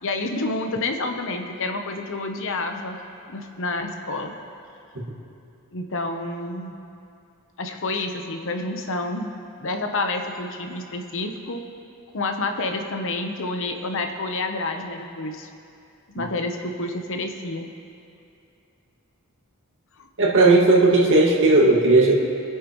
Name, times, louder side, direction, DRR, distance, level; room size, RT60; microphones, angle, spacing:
voice 1, 0.0-3.0 3.3-4.3 5.7-6.8 7.6-9.3 9.6-11.6 12.1-15.5 16.1-17.7 20.0-20.1, left 2 dB, 60° left, 5 dB, 1.0 m, -29 dB
voice 2, 20.2-22.2, right 2 dB, 60° right, -3 dB, 2.0 m, -16 dB
26.0 x 9.3 x 3.1 m, 2.6 s
head